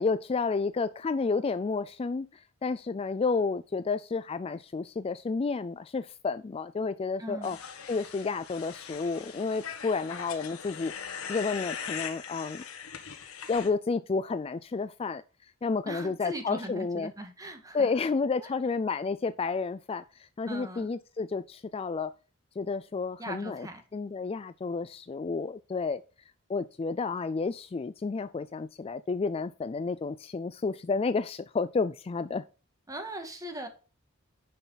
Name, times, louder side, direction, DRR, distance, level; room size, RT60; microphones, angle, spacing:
voice 1, 0.0-7.6 7.9-12.6 13.5-15.2 15.6-17.1 17.7-22.1 22.6-23.7 23.9-26.0 26.5-32.4, left 4 dB, 25° left, 0.3 m, -31 dB
voice 2, 7.2-7.6 15.8-17.9 18.4-18.5 20.5-20.9 23.2-23.8 32.9-33.7, right 1 dB, 15° right, 1.7 m, -39 dB
sound 1, 7.4-13.7, left 7 dB, 75° left, 1.6 m, -40 dB
10.0 x 5.6 x 4.0 m
head